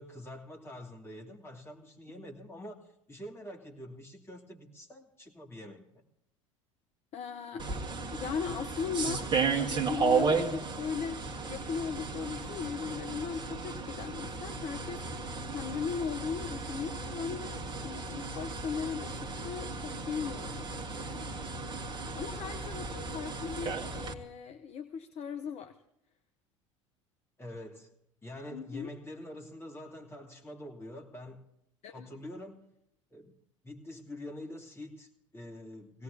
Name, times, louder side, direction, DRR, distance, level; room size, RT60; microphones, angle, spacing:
voice 1, 0.0-6.0 27.4-27.9 28.2-31.4 31.9-32.7 33.1-33.4 33.6-36.0, left 1 dB, 15° left, 1 dB, 2.8 m, -46 dB
voice 2, 7.1-7.7 8.1-15.2 15.5-21.3 22.1-25.8 28.5-28.9 31.8-32.1, left 6 dB, 40° left, 9 dB, 0.8 m, -38 dB
sound 1, 7.6-24.1, right 4 dB, 30° right, 1.7 m, -34 dB
23.0 x 17.5 x 2.8 m, 0.77 s
figure-of-eight pair, 70°, 16 cm